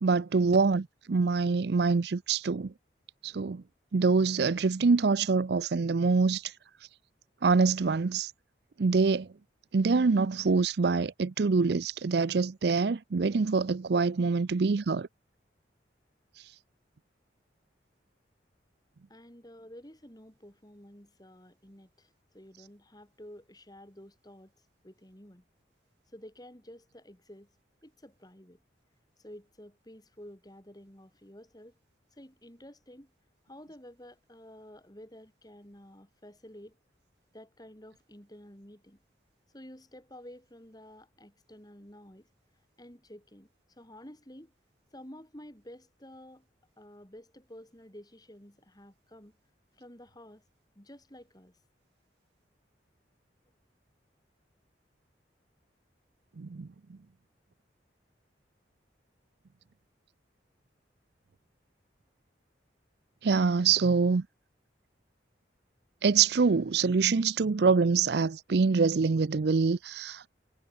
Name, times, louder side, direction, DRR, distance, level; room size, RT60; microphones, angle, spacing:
voice 1, 0.0-2.7 3.2-3.6 3.9-6.5 7.4-8.3 8.8-9.3 9.7-15.1 56.4-57.0 63.2-64.3 66.0-70.3, right 4 dB, 60° right, 0.5 m, -25 dB
voice 2, 19.1-24.5 24.8-25.4 26.1-27.5 27.8-28.6 29.2-31.8 32.1-33.1 33.4-36.8 37.3-39.0 39.5-42.3 42.8-44.5 44.9-46.5 46.8-49.4 49.8-50.4 50.7-51.6, equal, 20° left, 4.4 m, -51 dB
head